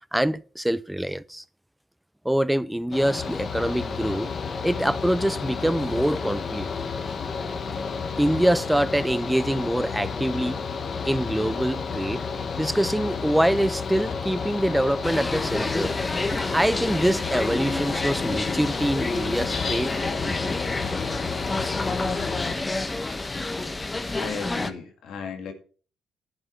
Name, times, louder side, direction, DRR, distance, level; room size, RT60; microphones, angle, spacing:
voice 1, 0.1-1.4 2.2-4.3 4.6-6.7 8.2-10.6 11.0-12.2 12.6-15.9 16.3-19.9 20.2-20.6, right 1 dB, 5° right, 0.7 m, -25 dB
Mechanical fan, 2.9-22.5, left 5 dB, 50° left, 1.8 m, -31 dB
sound 1, 15.0-24.7, left 2 dB, 25° left, 1.4 m, -29 dB
voice 2, 24.1-25.5, left 5 dB, 75° left, 2.1 m, -35 dB
10.5 x 7.6 x 5.8 m
supercardioid pair, 60°, 0 cm